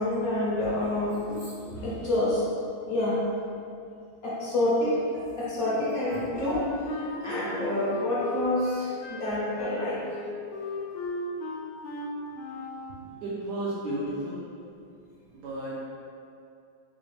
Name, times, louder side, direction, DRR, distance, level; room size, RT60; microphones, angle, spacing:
voice 1, 0.0-2.4 2.9-3.2 4.2-10.0, left 1 dB, 70° left, -8 dB, 0.8 m, -28 dB
Wind instrument woodwind instrument, 6.0-12.9, left 2 dB, 90° left, 1.4 m, -36 dB
voice 2, 13.2-14.4 15.3-16.0, right 1 dB, 75° right, -7 dB, 0.9 m, -33 dB
3.9 x 2.3 x 3.1 m, 2.5 s
omnidirectional pair, 2.2 m